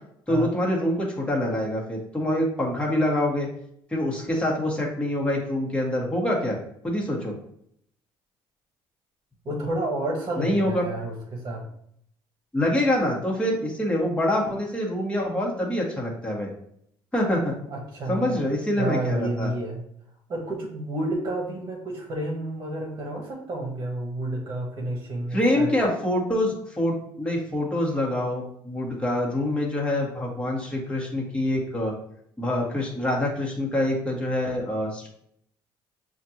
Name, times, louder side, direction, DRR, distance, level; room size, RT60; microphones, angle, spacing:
voice 1, 0.3-3.5 3.9-6.6 6.8-7.3 10.4-10.8 12.5-16.5 17.1-17.5 18.1-19.5 25.3-31.9 32.4-35.1, left 1 dB, 10° left, -2 dB, 1.5 m, -25 dB
voice 2, 9.4-11.7 17.7-18.4 18.8-19.8 20.3-25.7, right 1 dB, 40° right, -1 dB, 1.3 m, -30 dB
6.4 x 2.5 x 2.9 m, 0.70 s
cardioid pair, 105°, 9 cm